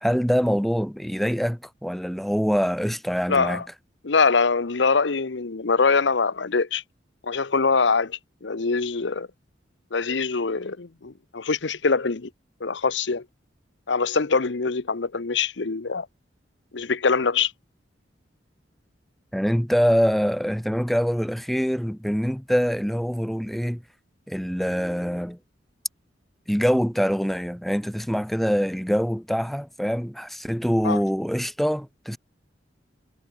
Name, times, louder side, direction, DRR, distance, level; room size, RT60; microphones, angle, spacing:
voice 1, 0.0-3.6 19.3-23.8 24.3-25.4 26.5-32.2, equal, ahead, 1.4 m, -24 dB
voice 2, 3.3-3.6 4.0-6.8 7.2-9.3 9.9-12.3 12.6-13.2 13.9-16.1 16.7-17.5 30.8-31.0, left 4 dB, 75° left, 0.9 m, -23 dB
head